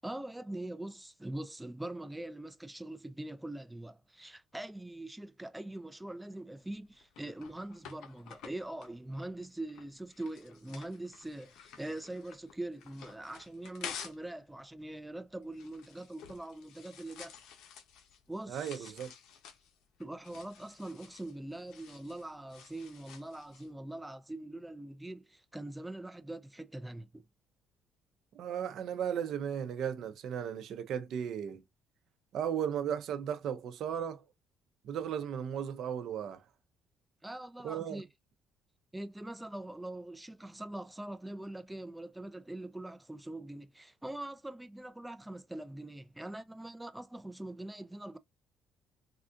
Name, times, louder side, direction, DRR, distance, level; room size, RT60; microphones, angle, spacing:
voice 1, 0.0-17.4 18.3-18.9 20.0-27.2 37.2-38.1 38.9-48.2, right 1 dB, 5° right, 0.4 m, -43 dB
sound 1, 6.6-14.3 14.6-23.7, left 8 dB, 75° left, 0.7 m, -51 dB
voice 2, 18.5-19.1 28.3-31.6 32.3-34.2 34.8-36.4 37.6-38.0, right 8 dB, 60° right, 0.5 m, -35 dB
3.6 x 2.3 x 2.5 m
cardioid pair, 125°, 0 cm